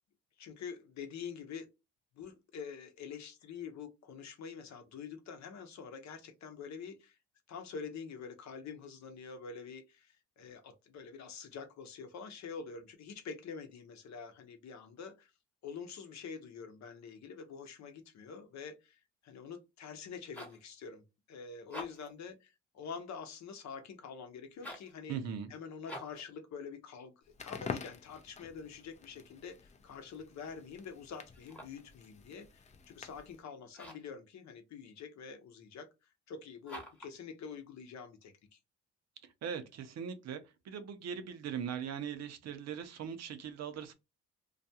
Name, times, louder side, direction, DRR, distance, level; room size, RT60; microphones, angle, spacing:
voice 1, 0.4-1.7 2.2-7.2 7.5-15.3 15.6-25.2 25.5-35.9 36.3-38.6, left 6 dB, 65° left, 0.7 m, -46 dB
sound 1, 20.0-20.7 21.6-22.2 24.5-25.0 25.8-26.3 31.3-31.9 33.7-34.2 36.6-37.2, left 1 dB, 5° left, 0.9 m, -47 dB
voice 2, 25.1-25.5 39.2-43.9, right 7 dB, 60° right, 0.6 m, -40 dB
Crackle, 27.3-33.4, left 5 dB, 25° left, 0.4 m, -47 dB
2.4 x 2.2 x 2.7 m
cardioid pair, 90°, 30 cm